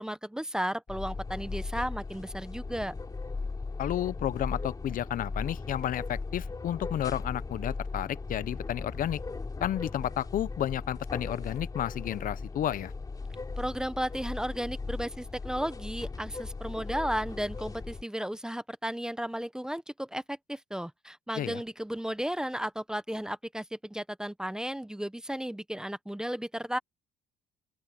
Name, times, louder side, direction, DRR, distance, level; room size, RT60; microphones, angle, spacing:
voice 1, 0.0-2.9 13.6-26.8, equal, 5° right, 0.8 m, -34 dB
sound 1, 0.9-18.0, left 3 dB, 20° left, 3.4 m, -38 dB
voice 2, 3.8-9.2 9.6-12.9 21.4-21.6, left 11 dB, 55° left, 0.7 m, -32 dB
open air
cardioid pair, 110°, 17 cm